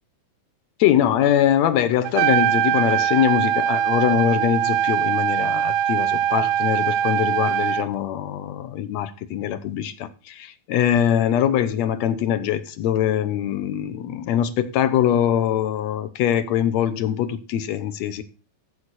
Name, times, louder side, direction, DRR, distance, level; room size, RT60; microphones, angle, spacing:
voice 1, 0.8-18.2, left 10 dB, 70° left, 2.0 m, -22 dB
Trumpet, 2.0-7.8, right 10 dB, 80° right, 2.1 m, -22 dB
14.5 x 6.5 x 4.2 m
omnidirectional pair, 3.6 m